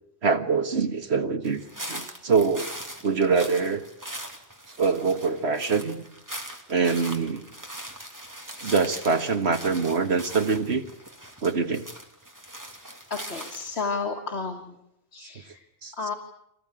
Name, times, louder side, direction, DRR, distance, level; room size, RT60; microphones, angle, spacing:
voice 1, 0.2-1.6 1.9-2.7 3.0-3.8 4.8-6.0 6.7-7.5 8.6-10.8 11.4-11.9 15.8-15.9, right 4 dB, 85° right, 7 dB, 1.9 m, -24 dB
sound 1, 1.4-13.8, right 1 dB, 15° right, 2.6 m, -40 dB
voice 2, 13.1-14.8 15.1-15.7 15.9-16.2, left 4 dB, 85° left, 2 dB, 2.1 m, -32 dB
25.0 x 18.5 x 9.0 m, 0.84 s
omnidirectional pair, 1.1 m